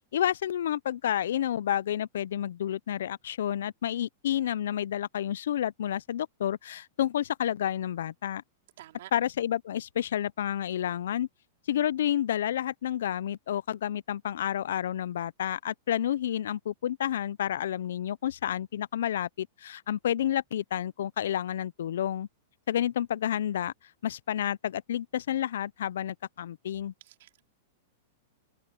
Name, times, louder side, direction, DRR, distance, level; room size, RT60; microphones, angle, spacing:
voice 1, 0.1-8.4 9.1-11.3 11.7-22.3 22.7-23.7 24.0-26.9, left 10 dB, 75° left, 0.3 m, -30 dB
voice 2, 8.8-9.1 27.0-27.4, right 14 dB, 55° right, 4.0 m, -49 dB
supercardioid pair, 175°, 0 cm